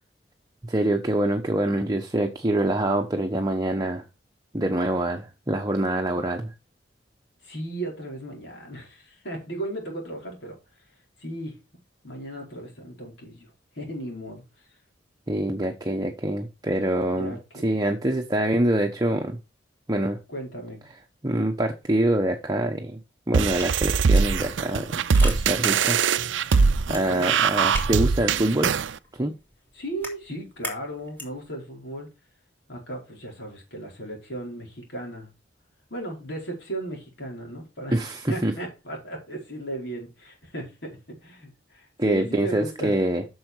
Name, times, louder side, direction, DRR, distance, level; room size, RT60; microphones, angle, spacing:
voice 1, 0.6-4.0 4.5-6.5 15.3-17.4 17.6-19.4 19.9-20.2 21.2-23.0 23.3-26.0 26.9-28.7 29.1-29.3 37.9-38.5 42.0-43.3, right 1 dB, 20° right, 1.0 m, -25 dB
voice 2, 7.4-10.6 11.2-11.6 12.0-13.5 13.7-14.4 17.1-17.7 20.3-20.8 26.9-27.3 29.7-32.1 32.7-35.3 35.9-38.0 38.3-43.0, right 1 dB, 65° left, 4.9 m, -36 dB
sound 1, 23.3-31.5, equal, 10° left, 3.7 m, -42 dB
sound 2, 23.3-28.9, right 5 dB, 85° right, 0.5 m, -22 dB
8.6 x 6.4 x 4.6 m
head